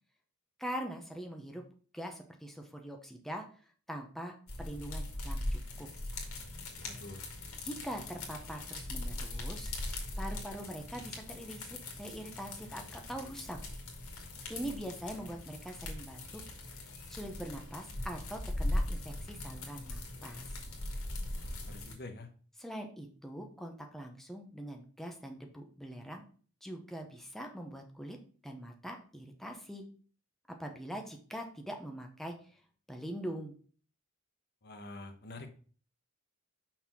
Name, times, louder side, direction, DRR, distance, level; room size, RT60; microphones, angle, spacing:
voice 1, 0.6-1.6 1.9-3.4 3.9-5.9 7.6-9.7 10.2-13.6 14.5-16.4 17.1-20.5 22.6-26.2 26.6-28.2 28.4-29.9 30.5-32.3 32.9-33.5, equal, ahead, 3 dB, 0.8 m, -43 dB
sound 1, 4.5-21.9, left 1 dB, 75° left, 2.0 m, -40 dB
voice 2, 6.8-7.3 21.4-22.3 34.6-35.5, left 2 dB, 50° left, 6 dB, 1.1 m, -47 dB
5.8 x 4.2 x 6.0 m, 0.42 s
head